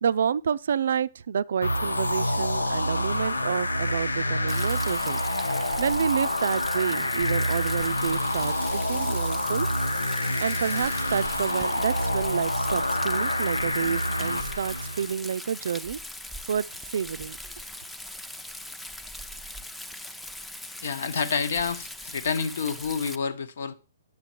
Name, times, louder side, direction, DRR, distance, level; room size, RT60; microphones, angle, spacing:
voice 1, 0.0-5.2 5.8-9.7 10.4-16.0 16.5-16.7 16.9-17.4, right 7 dB, 65° right, 0.4 m, -29 dB
sound 1, 1.6-15.1, left 1 dB, 90° left, 0.8 m, -27 dB
Rain, 4.5-23.2, left 1 dB, 5° left, 0.6 m, -40 dB
voice 2, 20.8-23.7, left 5 dB, 60° left, 1.2 m, -28 dB
9.6 x 7.0 x 4.5 m
figure-of-eight pair, 125°, 0 cm